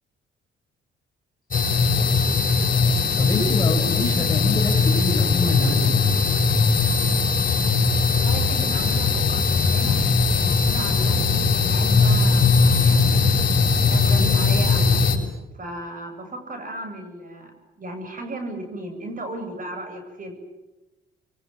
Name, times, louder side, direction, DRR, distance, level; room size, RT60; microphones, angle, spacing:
sound 1, 1.5-15.2, left 4 dB, 45° left, 7.0 m, -19 dB
voice 1, 3.2-6.1, left 3 dB, 20° left, -1 dB, 5.8 m, -25 dB
voice 2, 8.1-13.3 13.9-14.9 15.5-17.5 17.8-20.3, right 1 dB, 45° right, 6 dB, 7.6 m, -35 dB
26.5 x 23.5 x 9.2 m, 1.1 s
cardioid pair, 90°, 20 cm